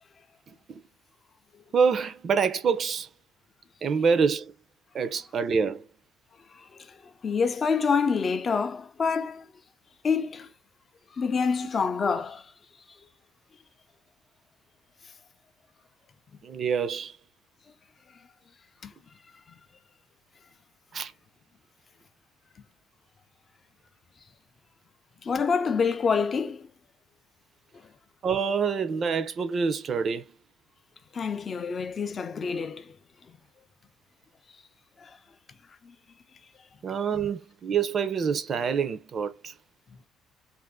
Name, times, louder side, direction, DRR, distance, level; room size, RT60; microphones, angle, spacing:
voice 1, 1.7-3.1 3.8-4.5 4.9-5.9 16.4-17.2 20.9-21.1 28.2-30.3 36.8-39.5, right 6 dB, 40° right, 0.5 m, -26 dB
voice 2, 7.2-9.5 10.0-10.5 11.2-12.4 18.8-18.9 25.2-26.7 31.1-32.8 35.0-35.1 35.8-35.9, left 5 dB, 35° left, 0.4 m, -26 dB
2.6 x 2.5 x 3.4 m
cardioid pair, 125°, 0 cm